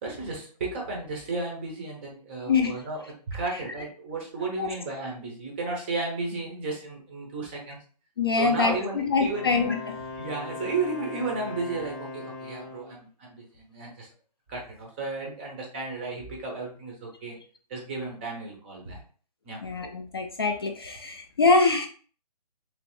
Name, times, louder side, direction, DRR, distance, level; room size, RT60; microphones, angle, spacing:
voice 1, 0.0-7.8 8.4-9.5 10.2-14.1 14.5-17.4 17.7-19.0 19.4-19.6, right 3 dB, 15° right, 0 dB, 0.6 m, -33 dB
voice 2, 8.2-10.0 19.6-21.9, left 4 dB, 35° left, 4 dB, 0.4 m, -24 dB
Wind instrument woodwind instrument, 9.2-13.0, left 3 dB, 15° left, 0.9 m, -39 dB
3.2 x 3.0 x 2.9 m, 0.43 s
hypercardioid pair, 160°, 21 cm